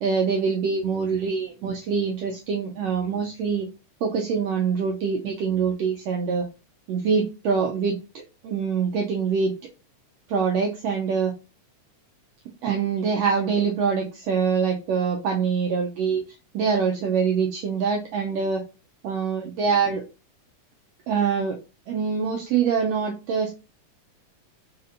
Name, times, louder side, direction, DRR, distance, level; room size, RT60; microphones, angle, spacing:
voice 1, 0.0-3.7 4.0-6.5 6.9-9.5 10.3-11.3 12.6-18.6 19.0-20.0 21.1-21.6 21.9-23.5, right 6 dB, 75° right, 1 dB, 1.5 m, -24 dB
4.2 x 4.2 x 2.5 m, 0.30 s
omnidirectional pair, 3.5 m